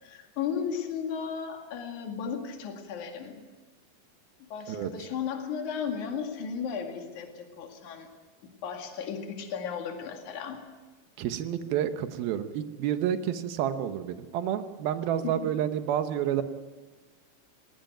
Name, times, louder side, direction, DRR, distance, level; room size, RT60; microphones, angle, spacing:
voice 1, 0.0-3.4 4.5-8.1 8.6-10.6 15.2-15.5, left 7 dB, 55° left, 4 dB, 3.4 m, -35 dB
voice 2, 11.2-16.4, right 10 dB, 80° right, 10 dB, 2.9 m, -29 dB
19.0 x 18.5 x 9.0 m, 1.3 s
omnidirectional pair, 4.3 m